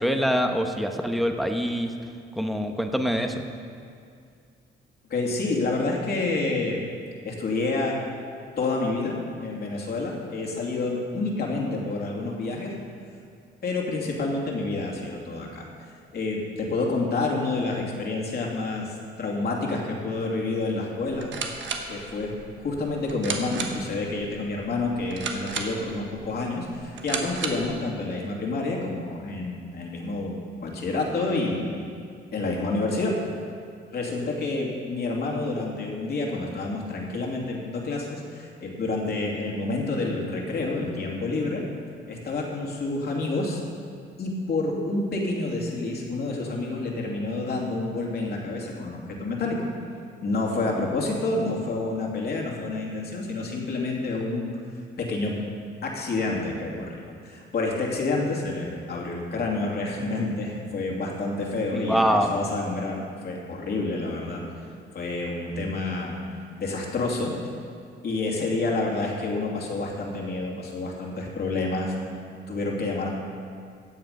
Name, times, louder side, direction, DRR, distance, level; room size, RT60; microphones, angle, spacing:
voice 1, 0.0-1.9 2.4-3.4 61.7-62.3, equal, ahead, 4 dB, 1.1 m, -24 dB
voice 2, 5.1-6.8 7.2-8.0 8.6-12.7 13.6-15.7 16.1-21.3 21.9-31.8 32.3-33.1 33.9-41.6 42.1-43.6 44.2-49.7 50.2-54.5 55.0-55.4 55.8-64.4 64.9-66.2 66.6-67.3 68.0-72.2 72.5-73.1, left 2 dB, 55° left, -2 dB, 2.7 m, -28 dB
sound 1, 21.1-27.8, right 5 dB, 70° right, 1.4 m, -35 dB
15.5 x 8.1 x 5.5 m, 2.3 s
cardioid pair, 90°, 20 cm